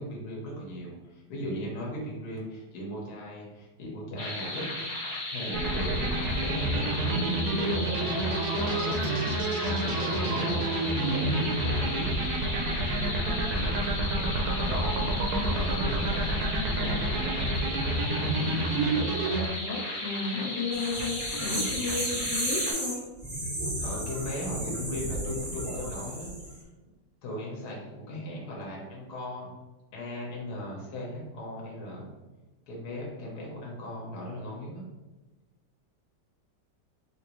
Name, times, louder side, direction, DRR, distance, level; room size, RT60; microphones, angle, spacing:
voice 1, 0.0-4.7 5.3-8.1 8.5-12.3 12.9-14.3 14.5-18.5 23.8-26.3 27.2-29.5 29.9-32.1 32.7-34.8, equal, 60° left, -3 dB, 1.4 m, -38 dB
sound 1, 4.2-22.7, left 1 dB, 40° left, 0.7 m, -35 dB
sound 2, 5.5-19.5, right 2 dB, 70° right, 1.0 m, -28 dB
voice 2, 19.6-23.0, left 4 dB, 80° left, -4 dB, 1.5 m, -33 dB
sound 3, 20.7-26.5, right 1 dB, 50° right, 0.4 m, -33 dB
3.7 x 2.6 x 3.0 m, 1.1 s
omnidirectional pair, 2.0 m